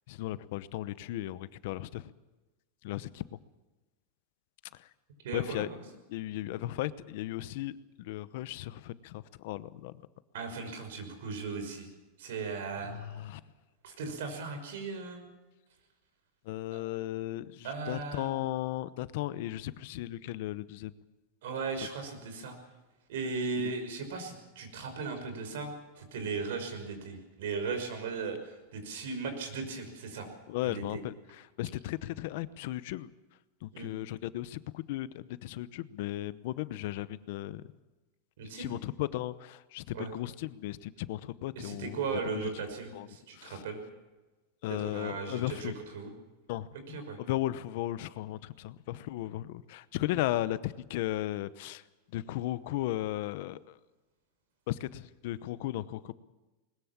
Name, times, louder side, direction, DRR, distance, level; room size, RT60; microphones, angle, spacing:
voice 1, 0.1-2.1 2.8-3.2 4.7-4.9 5.3-5.7 6.1-10.0 12.9-13.4 16.4-20.9 23.6-23.7 30.5-33.1 33.6-37.6 38.4-42.5 42.9-43.1 43.3-43.6 44.6-45.7 46.5-51.8 52.1-53.8 54.7-56.1, left 15 dB, 55° left, 16 dB, 0.8 m, -36 dB
voice 2, 5.2-5.8 10.3-11.9 12.2-12.9 13.8-15.2 16.7-16.8 17.6-18.3 21.4-22.6 23.1-25.7 26.0-30.3 30.6-30.8 33.7-33.9 38.4-38.8 39.9-40.1 41.6-43.8 44.7-46.1 46.9-47.2, right 4 dB, 75° right, 7 dB, 5.8 m, -37 dB
21.0 x 20.5 x 7.4 m, 1.1 s
supercardioid pair, 165°, 0 cm